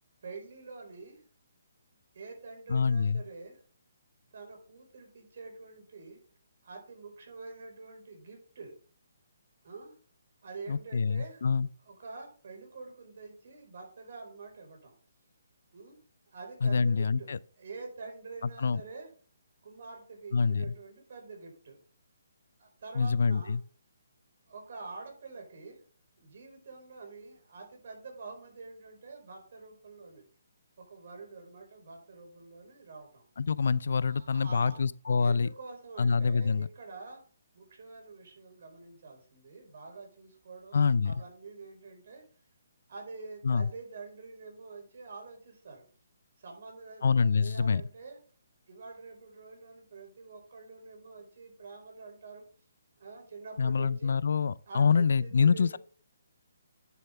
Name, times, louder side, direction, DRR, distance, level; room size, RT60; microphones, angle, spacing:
voice 1, 0.2-1.2 2.1-3.6 4.3-6.2 6.6-8.7 9.6-9.9 10.4-11.4 11.8-14.9 15.7-16.0 16.3-19.1 19.6-21.8 22.6-23.6 24.5-25.8 26.2-30.2 30.8-33.3 34.0-34.8 35.2-37.2 37.5-42.2 42.9-45.8 46.4-48.2 48.7-52.4 53.0-54.2 54.7-55.8, right 4 dB, 60° right, 4.7 m, -46 dB
voice 2, 2.7-3.2 10.7-11.7 16.6-17.4 18.6-18.8 20.3-20.7 22.9-23.6 33.4-35.5 36.0-36.7 40.7-41.1 43.4-43.7 47.0-47.8 53.6-55.8, left 5 dB, 70° left, 0.4 m, -26 dB
9.9 x 7.8 x 3.4 m
hypercardioid pair, 150°, 0 cm